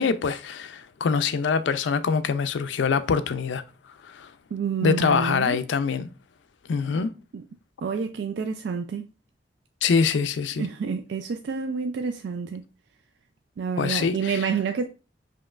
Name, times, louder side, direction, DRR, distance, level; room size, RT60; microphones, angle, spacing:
voice 1, 0.0-3.6 4.0-4.3 4.8-6.1 6.7-7.1 9.8-10.7 13.8-14.4, left 5 dB, 80° left, 0.4 m, -24 dB
voice 2, 4.5-5.6 7.3-7.4 7.8-9.1 10.6-12.6 13.6-14.9, right 5 dB, 65° right, 0.3 m, -28 dB
5.2 x 2.9 x 2.4 m
head